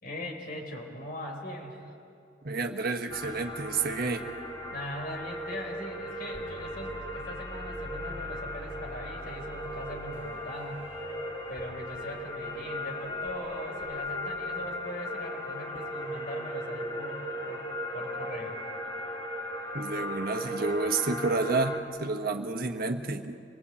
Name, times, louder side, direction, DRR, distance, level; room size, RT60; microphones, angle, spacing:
voice 1, 0.0-1.8 4.7-10.8 11.5-17.7 17.9-18.6, left 1 dB, 55° left, 2 dB, 4.2 m, -40 dB
voice 2, 2.4-4.3 19.7-23.3, right 3 dB, 55° right, 5 dB, 1.4 m, -30 dB
sound 1, 3.1-21.8, left 1 dB, 25° left, 2.9 m, -37 dB
sound 2, 3.1-14.9 15.8-16.1, left 1 dB, 15° right, 2.6 m, -49 dB
26.5 x 19.5 x 8.5 m, 2.6 s
head